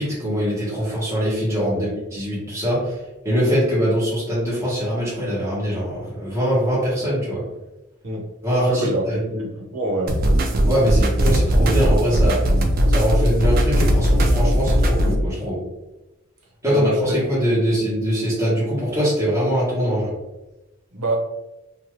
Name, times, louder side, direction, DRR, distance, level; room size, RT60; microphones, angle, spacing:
voice 1, 0.0-3.0 3.2-7.4 8.4-9.2 10.7-12.4 12.9-15.6 16.6-20.1, equal, 10° right, -9 dB, 1.1 m, -22 dB
voice 2, 8.7-10.2 16.7-17.2 17.5-17.7 20.9-21.1, right 1 dB, 90° right, -2 dB, 0.9 m, -25 dB
sound 1, 10.1-15.2, equal, 40° right, 0.3 m, -18 dB
2.7 x 2.3 x 3.0 m, 1.0 s
head